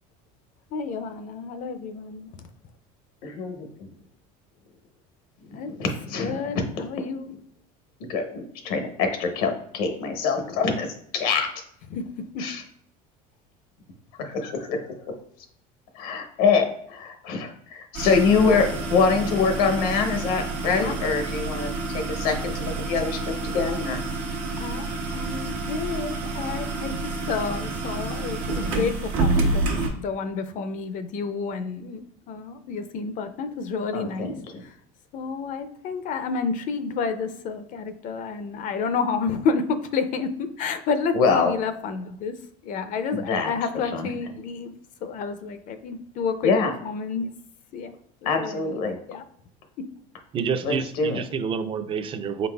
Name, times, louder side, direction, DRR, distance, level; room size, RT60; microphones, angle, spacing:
voice 1, 0.7-2.5 5.5-5.7 6.2-7.3 11.9-12.4 20.8-21.0 24.6-24.9 25.1-27.0 27.3-32.0 32.3-34.3 34.6-34.8 35.1-42.4 42.6-44.7 45.0-46.5 46.8-47.3 47.7-47.9 48.2-48.8 49.1-49.2, left 5 dB, 45° left, 10 dB, 0.4 m, -30 dB
voice 2, 3.2-3.9 5.7-6.6 8.1-10.9 11.1-11.5 12.4-12.6 14.2-15.1 15.9-24.0 33.9-34.6 41.1-41.5 43.1-43.5 43.9-44.1 46.4-46.7 48.2-49.0 50.6-51.2, left 5 dB, 90° left, 5 dB, 0.9 m, -25 dB
sound 1, 17.9-29.9, right 3 dB, 85° right, 1.1 m, -29 dB
voice 3, 50.3-52.5, right 6 dB, 30° right, 10 dB, 0.4 m, -28 dB
4.7 x 4.0 x 2.2 m, 0.68 s
supercardioid pair, 115°, 18 cm